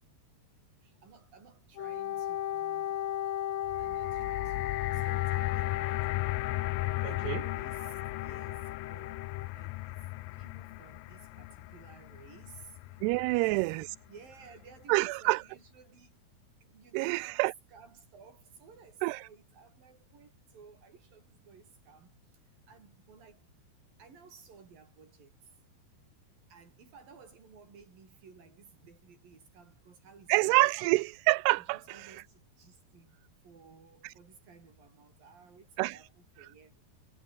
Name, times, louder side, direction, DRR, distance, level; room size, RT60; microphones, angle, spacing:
voice 1, 0.8-3.2 3.8-9.3 9.5-10.0 10.3-13.0 13.3-13.7 14.1-16.2 16.6-23.5 24.0-25.5 26.5-30.7 31.6-33.2 33.4-36.8, right 5 dB, 60° right, 6.7 m, -56 dB
Wind instrument woodwind instrument, 1.8-9.5, left 11 dB, 65° left, 1.7 m, -36 dB
sound 1, 3.6-13.9 14.6-14.7, left 21 dB, 85° left, 2.1 m, -36 dB
voice 2, 7.0-7.4 13.0-13.9 14.9-15.4 16.9-17.5 19.0-19.3 30.3-32.2 34.0-34.1 35.8-36.0, right 24 dB, 85° right, 2.6 m, -27 dB
omnidirectional pair, 4.7 m